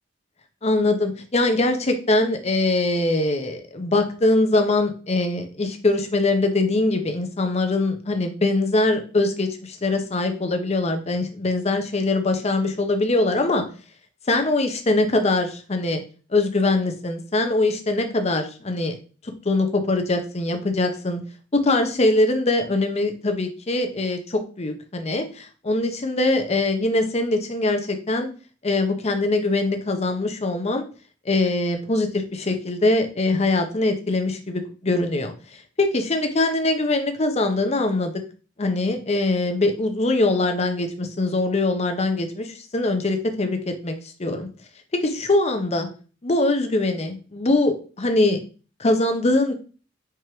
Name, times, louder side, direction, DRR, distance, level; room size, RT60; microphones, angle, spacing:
voice 1, 0.6-13.7 14.3-16.0 16.3-19.0 19.4-21.2 21.5-28.3 28.6-30.8 31.2-35.3 35.8-38.1 38.6-43.9 44.2-44.5 44.9-45.9 46.2-48.4 48.8-49.5, left 2 dB, 35° left, 7 dB, 0.8 m, -22 dB
4.7 x 3.6 x 3.0 m, 0.36 s
head